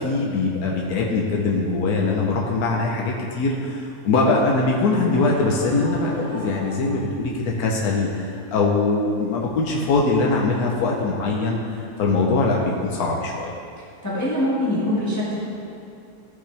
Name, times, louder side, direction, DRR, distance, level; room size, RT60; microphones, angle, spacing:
voice 1, 0.0-13.5, left 3 dB, 75° left, -2 dB, 1.4 m, -22 dB
Screaming, 4.8-7.5, right 1 dB, 65° right, 1.7 m, -42 dB
voice 2, 14.0-15.4, left 1 dB, 10° left, -9 dB, 1.8 m, -23 dB
15.0 x 5.9 x 3.4 m, 2.5 s
omnidirectional pair, 1.6 m